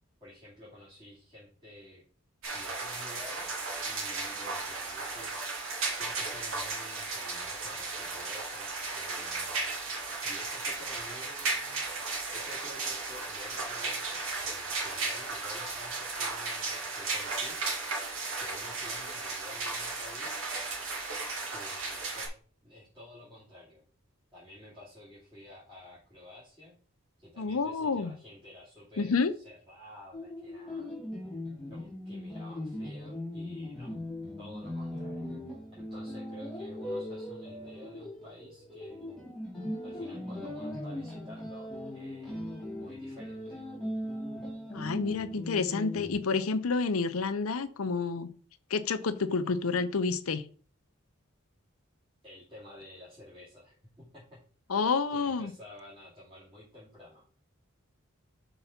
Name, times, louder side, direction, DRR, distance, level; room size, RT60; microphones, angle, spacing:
voice 1, 0.2-2.0 2.5-3.5 3.8-5.3 5.8-11.8 12.3-18.0 18.4-20.4 21.5-22.4 22.6-23.8 24.3-26.7 27.2-30.9 31.7-34.0 34.4-35.3 35.7-39.4 39.8-43.6 52.2-54.4 55.1-57.2, left 1 dB, 25° right, -9 dB, 2.7 m, -51 dB
sound 1, 2.4-22.3, right 3 dB, 70° right, 1.8 m, -35 dB
voice 2, 27.4-28.1 29.0-29.3 44.7-48.3 48.7-50.4 54.7-55.5, left 4 dB, 80° left, 12 dB, 0.6 m, -29 dB
sound 2, 30.1-46.1, left 1 dB, ahead, 2.1 m, -39 dB
5.6 x 3.9 x 5.8 m, 0.42 s
head